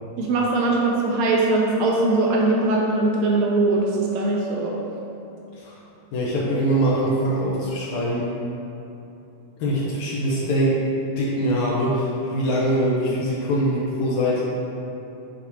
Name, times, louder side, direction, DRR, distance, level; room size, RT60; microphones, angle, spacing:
voice 1, 0.2-4.8, right 2 dB, 80° right, -2 dB, 1.6 m, -21 dB
voice 2, 6.1-8.3 9.6-10.7 11.2-14.4, equal, 75° left, -6 dB, 2.1 m, -23 dB
9.0 x 4.1 x 2.9 m, 2.9 s
omnidirectional pair, 3.6 m